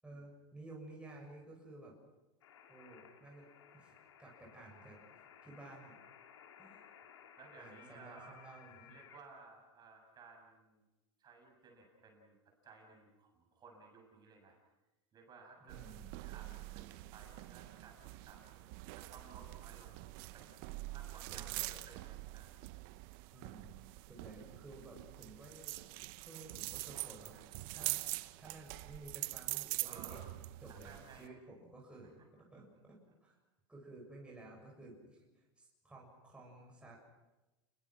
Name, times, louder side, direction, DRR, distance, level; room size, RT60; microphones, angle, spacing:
voice 1, 0.0-1.9 2.7-3.5 3.7-5.0 5.4-6.0 6.6-6.8 7.6-8.9 15.6-16.1 21.3-21.8 23.3-23.8 24.1-25.8 26.2-27.4 27.7-30.2 30.6-32.2 32.5-33.4 33.7-37.0, right 2 dB, 5° right, -2 dB, 7.0 m, -54 dB
sound 1, 2.4-9.2, left 8 dB, 80° left, 3.2 m, -59 dB
voice 2, 7.4-8.4 8.9-10.8 11.2-12.4 12.6-14.6 15.1-15.8 16.2-20.5 20.9-22.6 29.8-30.2 30.7-31.3, right 4 dB, 30° right, 2 dB, 7.4 m, -58 dB
sound 2, 15.7-31.3, right 21 dB, 55° right, 0.9 m, -44 dB
30.0 x 21.0 x 6.2 m, 1.1 s
hypercardioid pair, 115°, 14 cm